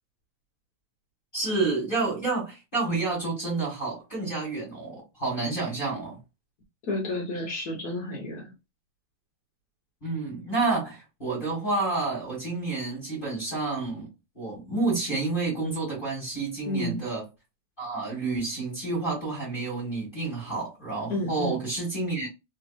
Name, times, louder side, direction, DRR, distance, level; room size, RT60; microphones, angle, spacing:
voice 1, 1.3-6.2 10.0-14.1 14.4-17.3 17.8-22.3, right 3 dB, 25° left, 1.9 m, -29 dB
voice 2, 6.8-8.5 16.7-17.0 21.1-21.6, left 1 dB, 55° left, 1.2 m, -31 dB
3.5 x 3.0 x 2.5 m
omnidirectional pair, 2.4 m